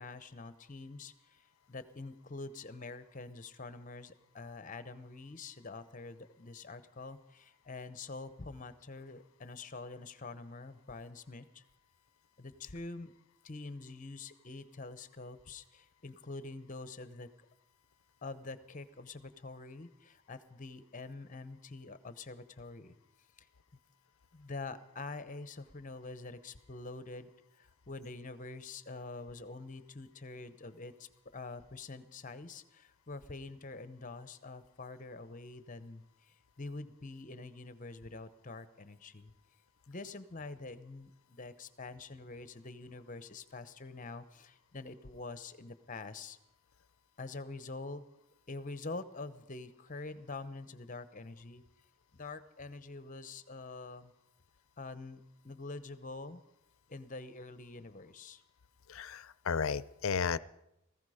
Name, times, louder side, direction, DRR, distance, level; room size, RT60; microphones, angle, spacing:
voice 1, 0.0-11.6 12.4-13.1 13.4-17.3 18.2-22.9 23.4-23.5 24.3-39.3 39.9-46.4 47.2-48.0 48.5-51.6 52.1-54.1 54.8-56.4 56.9-58.4, left 3 dB, 35° left, 13 dB, 0.9 m, -46 dB
voice 2, 58.9-60.4, left 6 dB, 70° left, 18 dB, 0.5 m, -33 dB
19.0 x 15.0 x 5.0 m, 0.83 s
head